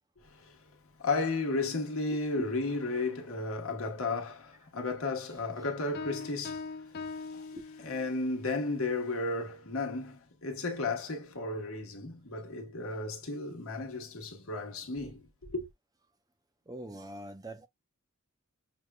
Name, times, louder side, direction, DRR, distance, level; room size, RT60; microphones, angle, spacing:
voice 1, 0.2-0.6 1.0-7.5 7.8-15.7, left 3 dB, 70° left, 1.3 m, -34 dB
Piano, 5.9-8.3, left 4 dB, 45° left, 0.4 m, -41 dB
voice 2, 16.7-17.7, right 1 dB, 15° right, 0.4 m, -43 dB
6.5 x 2.3 x 2.3 m
head